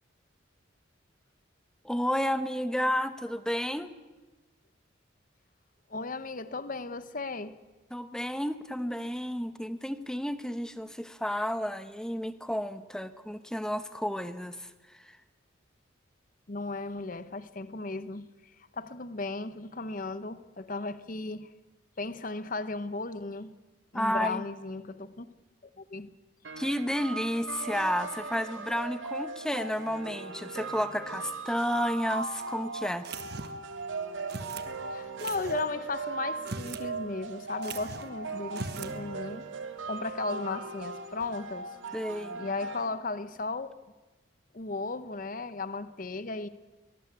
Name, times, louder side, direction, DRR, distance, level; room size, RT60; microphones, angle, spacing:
voice 1, 1.8-3.9 7.9-14.7 23.9-24.4 26.6-33.1 41.9-42.4, equal, 5° left, 11 dB, 0.9 m, -31 dB
voice 2, 5.9-7.6 16.5-18.3 18.7-21.5 22.0-23.5 23.9-25.3 25.8-26.1 34.9-39.5 39.9-41.7 42.4-43.7 44.5-46.5, left 3 dB, 45° left, 13 dB, 0.9 m, -36 dB
sound 1, 26.4-42.9, right 3 dB, 80° right, 2.1 m, -38 dB
sound 2, 33.0-33.7 34.3-34.7 35.2-35.6 36.3-36.9 37.2-37.3 37.6-38.1 38.5-39.0, right 4 dB, 55° right, 1.3 m, -40 dB
23.0 x 19.0 x 8.3 m, 1.2 s
head